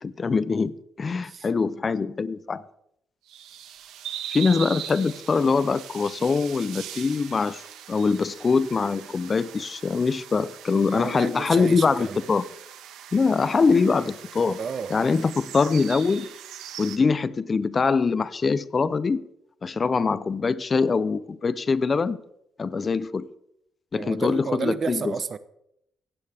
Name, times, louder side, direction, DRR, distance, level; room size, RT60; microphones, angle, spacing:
voice 1, 0.0-2.7 4.3-7.6 7.9-12.5 13.1-14.6 14.9-16.3 16.8-19.2 19.6-22.2 22.6-23.3 23.9-25.1, left 4 dB, 35° left, 0.6 m, -23 dB
sound 1, 3.3-17.0, right 10 dB, 90° right, 1.8 m, -41 dB
voice 2, 10.9-12.3 14.6-14.9 23.9-25.4, right 6 dB, 50° right, 0.9 m, -31 dB
17.0 x 15.5 x 3.6 m
cardioid pair, 90°, 0 cm